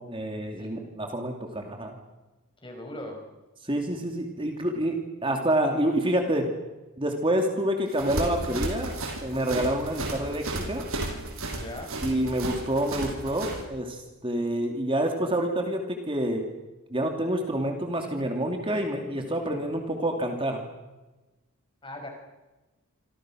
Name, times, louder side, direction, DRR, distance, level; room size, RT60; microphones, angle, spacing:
voice 1, 0.0-1.9 3.6-6.5 7.0-8.9 9.2-10.8 12.0-16.5 16.9-20.6, right 1 dB, 25° right, 3 dB, 2.7 m, -28 dB
voice 2, 2.6-3.2 11.5-12.0 21.8-22.1, left 1 dB, 25° left, 3 dB, 5.8 m, -39 dB
sound 1, 7.9-13.6, right 2 dB, 75° right, 6.4 m, -33 dB
27.5 x 26.0 x 6.4 m, 1.1 s
head